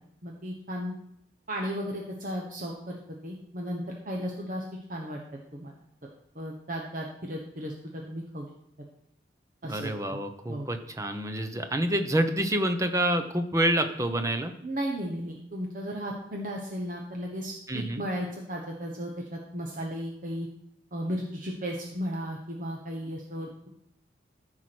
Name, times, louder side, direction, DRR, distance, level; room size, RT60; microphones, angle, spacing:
voice 1, 0.2-0.9 1.5-5.2 5.5-5.7 6.3-8.5 9.6-10.2 10.5-10.7 14.6-20.5 20.9-23.7, equal, 50° right, 0 dB, 1.2 m, -35 dB
voice 2, 9.7-14.5 17.7-18.0, right 1 dB, 20° right, 6 dB, 0.9 m, -27 dB
14.0 x 4.8 x 6.1 m, 0.74 s
head